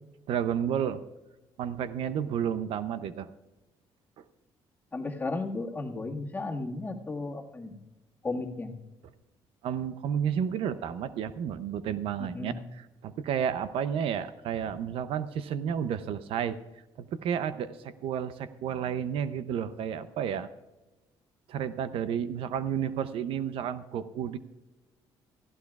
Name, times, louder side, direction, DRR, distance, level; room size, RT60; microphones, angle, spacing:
voice 1, 0.3-1.0 1.6-3.3 9.6-16.6 17.0-20.5 21.5-24.4, right 8 dB, 75° right, 13 dB, 0.6 m, -31 dB
voice 2, 4.9-7.8 8.2-8.7 12.2-12.6, left 3 dB, 20° left, 2 dB, 1.8 m, -34 dB
16.5 x 15.0 x 2.4 m, 1.1 s
cardioid pair, 100°, 10 cm